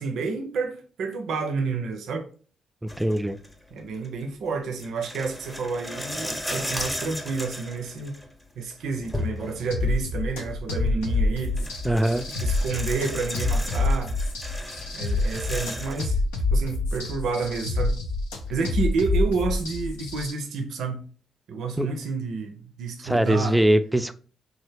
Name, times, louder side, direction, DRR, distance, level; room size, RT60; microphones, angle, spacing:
voice 1, 0.0-2.3 3.7-8.2 8.6-11.7 12.4-14.1 14.9-16.2 16.5-18.0 18.5-21.1 21.5-23.6, right 4 dB, 70° right, 0.5 m, -30 dB
sound 1, 2.9-3.5 4.0-4.1 4.8-8.3 8.6-9.8 11.1-11.2 11.4-16.1, left 1 dB, 10° left, 0.7 m, -35 dB
voice 2, 3.0-3.4 11.8-12.2 21.8-21.9 23.0-24.1, right 1 dB, 10° right, 0.3 m, -21 dB
sound 2, 9.7-20.3, left 2 dB, 85° left, 0.4 m, -27 dB
2.9 x 2.1 x 3.3 m
hypercardioid pair, 45°, 0 cm